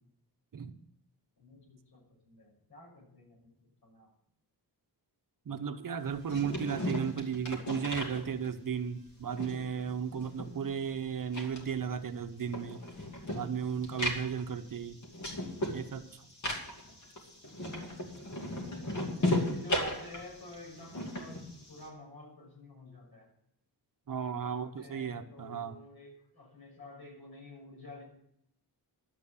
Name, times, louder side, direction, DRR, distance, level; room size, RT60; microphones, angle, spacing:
voice 1, 1.4-3.5 3.8-4.1 18.8-23.3 24.1-28.0, left 1 dB, 70° left, -2 dB, 6.5 m, -50 dB
voice 2, 5.5-12.8 13.3-15.0 15.7-16.3 24.1-25.8, right 7 dB, 55° right, 9 dB, 0.9 m, -35 dB
sound 1, 6.1-8.7 9.1-10.9 11.2-21.9, left 1 dB, 45° left, 2.6 m, -36 dB
12.0 x 9.0 x 7.1 m, 0.75 s
wide cardioid pair, 175°, 40 cm